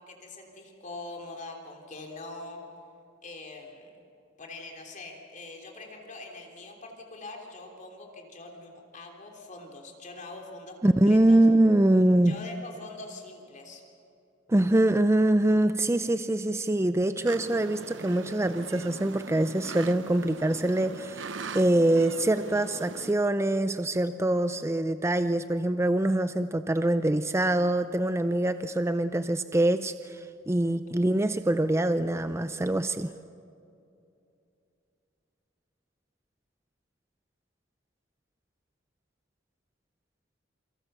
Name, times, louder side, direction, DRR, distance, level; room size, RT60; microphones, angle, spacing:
voice 1, 0.0-2.6 3.2-3.9 4.4-11.5 12.2-13.8, left 2 dB, 40° left, 1 dB, 3.3 m, -43 dB
voice 2, 10.8-12.4 14.5-33.1, right 1 dB, 15° right, 11 dB, 0.5 m, -24 dB
sound 1, 17.3-23.1, right 4 dB, 75° right, 0.9 m, -41 dB
28.5 x 25.0 x 6.8 m, 2.7 s
head